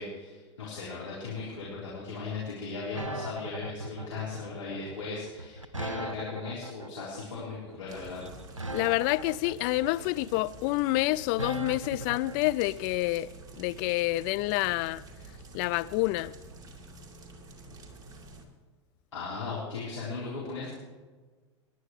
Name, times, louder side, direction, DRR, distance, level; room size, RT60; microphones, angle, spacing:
voice 1, 0.0-8.3 19.1-20.7, left 4 dB, 75° left, 4.3 m, -37 dB
sound 1, 2.9-12.5, right 2 dB, 90° right, 0.6 m, -39 dB
sound 2, 7.9-18.5, right 2 dB, 25° right, 2.4 m, -48 dB
voice 2, 8.7-13.3 13.6-15.0 15.5-16.3, left 19 dB, 40° left, 0.4 m, -28 dB
28.5 x 11.0 x 3.3 m
figure-of-eight pair, 90°, 16 cm